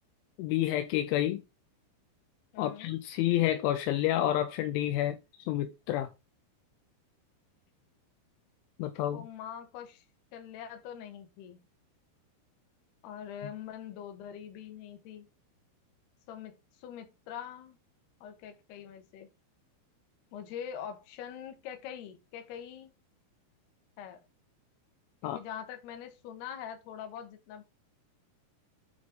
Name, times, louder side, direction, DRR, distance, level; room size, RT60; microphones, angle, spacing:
voice 1, 0.4-1.4 2.6-6.1 8.8-9.2 25.2-25.4, left 13 dB, 85° left, 2.8 m, -29 dB
voice 2, 2.5-2.9 9.1-10.0 10.3-11.6 13.0-15.3 16.3-17.8 18.2-19.3 20.3-22.9 24.0-24.3 25.2-27.6, left 9 dB, 65° left, 2.9 m, -43 dB
9.6 x 4.3 x 3.7 m
omnidirectional pair, 5.8 m